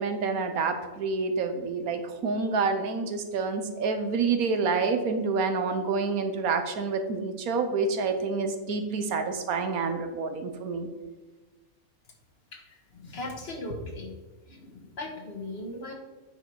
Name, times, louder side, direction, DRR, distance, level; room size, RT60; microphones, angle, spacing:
voice 1, 0.0-10.9, right 4 dB, 90° right, 7 dB, 1.4 m, -28 dB
voice 2, 12.5-14.2 14.4-15.9, left 2 dB, 45° left, 2 dB, 1.4 m, -38 dB
8.9 x 4.9 x 4.6 m, 1.2 s
omnidirectional pair, 1.5 m